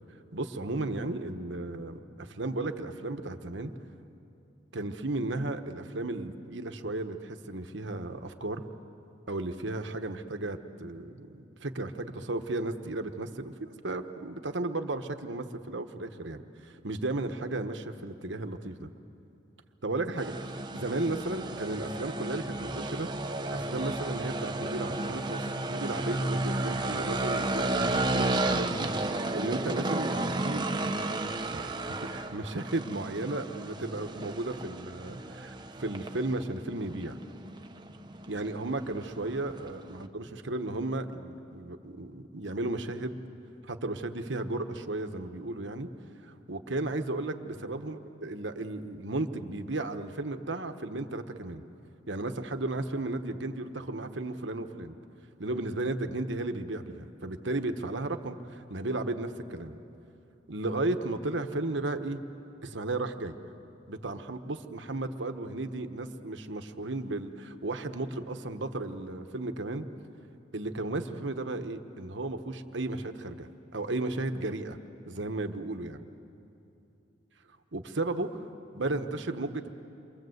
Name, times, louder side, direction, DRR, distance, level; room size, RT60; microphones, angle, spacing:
voice 1, 0.3-3.7 4.7-8.6 9.3-18.9 19.8-20.3 20.7-23.1 23.5-30.6 31.5-31.8 32.1-37.2 38.3-43.2 43.6-45.9 46.2-51.6 52.1-54.9 55.4-59.8 60.5-62.2 62.6-63.3 63.9-69.8 70.5-74.8 75.1-76.0 77.7-78.4 78.7-79.7, right 2 dB, 65° right, 7 dB, 1.2 m, -34 dB
sound 1, 20.2-40.1, right 2 dB, 25° right, 1.0 m, -33 dB
29.0 x 24.0 x 8.0 m, 2.8 s
head